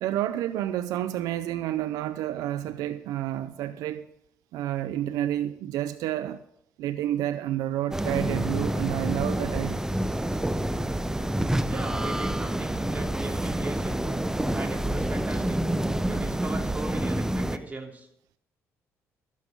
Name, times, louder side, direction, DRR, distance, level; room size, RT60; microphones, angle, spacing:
voice 1, 0.0-4.1 4.5-6.4 6.8-9.8, right 12 dB, 80° right, 0.4 m, -29 dB
sound 1, 7.9-17.6, right 1 dB, 10° right, 0.8 m, -28 dB
voice 2, 11.6-14.2 14.5-15.6 16.1-18.1, right 2 dB, 25° right, 3.2 m, -38 dB
13.5 x 8.3 x 5.2 m
supercardioid pair, 70°, 6 cm